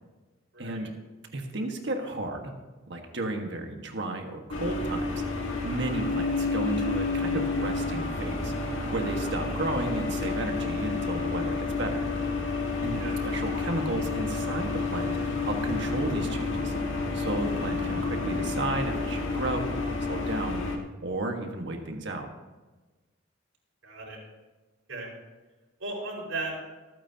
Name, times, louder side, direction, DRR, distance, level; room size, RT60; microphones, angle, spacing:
voice 1, 0.6-0.9 1.3-2.5 2.9-5.2 5.6-12.0 12.8-15.1 15.4-16.7 17.1-19.7 20.1-20.6 21.0-22.3, right 2 dB, 60° right, 3 dB, 1.5 m, -33 dB
sound 1, 4.5-20.8, left 3 dB, 75° left, 1.7 m, -30 dB
voice 2, 23.8-24.2 24.9-25.1 25.8-26.5, right 2 dB, 75° right, -3 dB, 5.1 m, -36 dB
25.0 x 9.2 x 2.9 m, 1.2 s
head